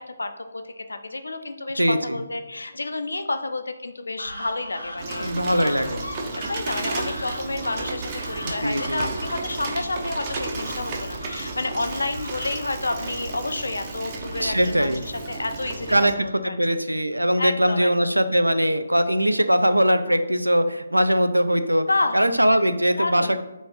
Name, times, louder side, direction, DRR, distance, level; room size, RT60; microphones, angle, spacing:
voice 1, 0.0-6.0 6.4-16.8 17.4-17.9 21.9-22.2 23.0-23.3, left 2 dB, 70° left, 8 dB, 0.3 m, -30 dB
voice 2, 1.8-2.2 5.2-6.0 8.6-9.1 14.4-15.0 15.9-21.8 22.1-23.4, equal, 90° right, 11 dB, 0.3 m, -21 dB
oca enfadada vr, 4.2-14.9, equal, 90° left, 0.8 m, -40 dB
Bicycle, 5.0-16.1, right 3 dB, 30° right, 0.5 m, -33 dB
3.9 x 2.4 x 3.5 m, 1.0 s
figure-of-eight pair, 145°, 0 cm